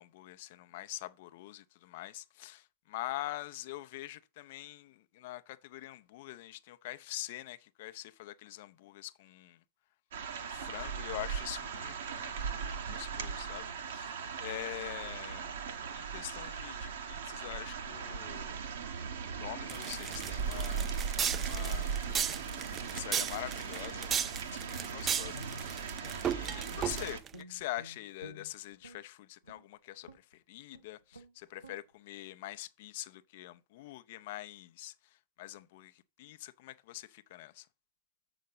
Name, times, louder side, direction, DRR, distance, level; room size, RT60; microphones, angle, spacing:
voice 1, 0.0-9.6 10.4-15.5 16.1-18.6 19.4-21.1 21.4-22.1 22.7-25.9 26.3-34.9 35.4-37.7, left 16 dB, 50° left, 0.6 m, -44 dB
sound 1, 10.1-27.2, right 6 dB, 60° right, 1.0 m, -38 dB
sound 2, 19.7-27.3, right 8 dB, 25° right, 0.4 m, -35 dB
Guitar, 25.3-27.0 27.3-29.0 29.4-29.7 30.0-30.3 30.7-30.9 31.1-31.3 31.6-31.8, equal, 90° right, 1.4 m, -51 dB
7.4 x 5.0 x 5.7 m
figure-of-eight pair, 90°, 0 cm